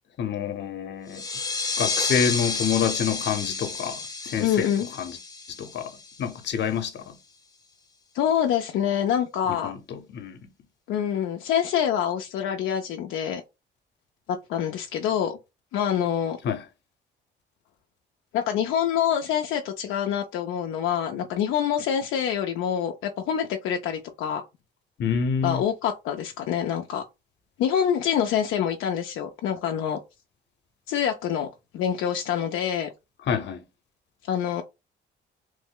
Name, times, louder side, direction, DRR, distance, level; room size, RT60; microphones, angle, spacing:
voice 1, 0.2-1.2 1.8-4.7 5.0-5.2 5.6-7.1 9.5-10.4 16.4-16.6 25.0-25.6 33.3-33.6, left 7 dB, 60° left, 0.8 m, -27 dB
sound 1, 1.1-6.4, left 4 dB, 20° left, 0.6 m, -31 dB
voice 2, 4.4-4.9 8.1-9.7 10.9-13.4 14.3-15.4 15.7-16.4 18.3-24.4 25.4-27.0 27.6-30.0 30.9-31.5 31.7-32.9 34.3-34.6, left 9 dB, 85° left, 0.4 m, -26 dB
3.1 x 2.0 x 3.6 m
cardioid pair, 90°, 20 cm